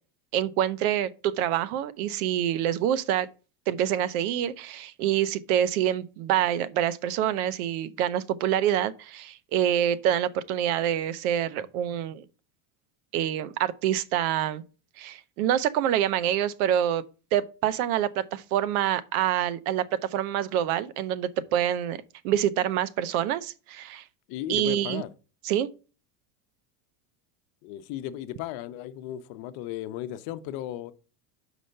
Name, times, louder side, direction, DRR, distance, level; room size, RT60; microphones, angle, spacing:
voice 1, 0.3-3.3 3.7-12.2 13.1-14.6 15.0-17.0 17.3-19.9 20.1-22.0 22.2-24.0 24.5-25.0 25.4-25.7, right 10 dB, 90° right, 0.8 m, -26 dB
voice 2, 24.3-25.1 27.6-30.9, left 12 dB, 55° left, 0.8 m, -35 dB
6.5 x 5.0 x 5.6 m
cardioid pair, 155°, 43 cm